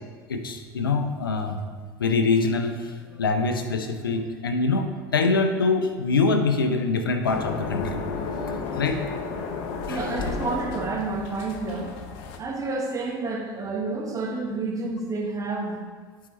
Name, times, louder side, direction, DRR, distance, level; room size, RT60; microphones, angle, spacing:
voice 1, 0.3-1.6 2.0-4.9 5.1-8.0 8.8-9.0 9.9-10.1, left 3 dB, 90° left, 6 dB, 0.5 m, -24 dB
sound 1, 7.2-12.4, left 4 dB, 60° left, 0.8 m, -32 dB
voice 2, 9.9-11.9 12.4-15.8, right 3 dB, 30° right, 1 dB, 1.3 m, -29 dB
9.1 x 4.7 x 3.1 m, 1.5 s
hypercardioid pair, 75°, 11 cm